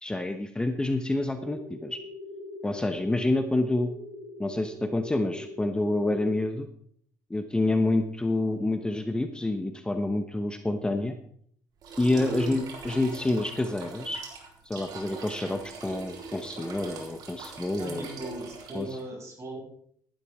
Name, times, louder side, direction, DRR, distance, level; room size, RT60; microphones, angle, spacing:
voice 1, 0.0-2.0 2.6-3.9 4.4-6.7 7.3-11.1 12.0-14.2 14.6-18.1 18.7-19.0, left 2 dB, 10° left, 7 dB, 1.0 m, -28 dB
sound 1, 1.3-6.3, left 1 dB, 90° right, 3.0 m, -43 dB
sound 2, 11.8-19.0, right 4 dB, 65° right, 3.9 m, -41 dB
voice 2, 17.8-19.6, right 1 dB, 40° right, -1 dB, 7.0 m, -38 dB
15.0 x 11.5 x 3.6 m, 0.64 s
cardioid pair, 95°, 7 cm